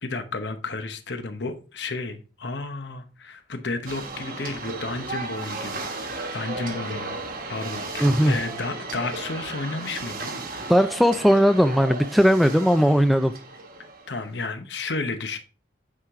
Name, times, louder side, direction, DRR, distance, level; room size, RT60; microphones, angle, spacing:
voice 1, 0.0-7.2 7.5-10.3 14.1-15.4, left 3 dB, 70° left, 1.0 m, -32 dB
sound 1, 3.9-14.3, right 3 dB, 45° right, 1.3 m, -35 dB
voice 2, 8.0-8.3 10.7-13.3, equal, ahead, 0.3 m, -18 dB
8.7 x 4.9 x 3.7 m
head